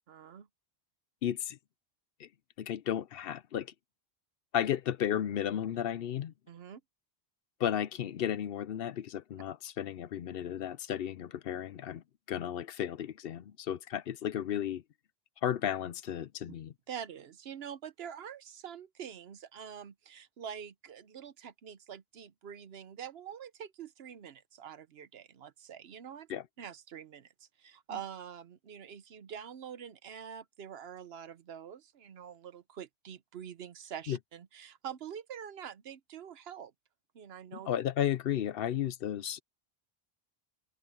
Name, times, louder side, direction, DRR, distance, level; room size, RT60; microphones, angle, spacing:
voice 1, 0.1-0.5 6.5-6.8 16.9-26.3 26.6-36.7 37.1-37.7, right 8 dB, 70° right, 1.0 m, -45 dB
voice 2, 1.2-1.6 2.2-2.3 2.6-3.7 4.5-6.3 7.6-14.8 15.4-16.7 26.3-26.4 34.1-34.2 37.7-39.4, left 10 dB, 65° left, 0.8 m, -34 dB
omnidirectional pair, 1.1 m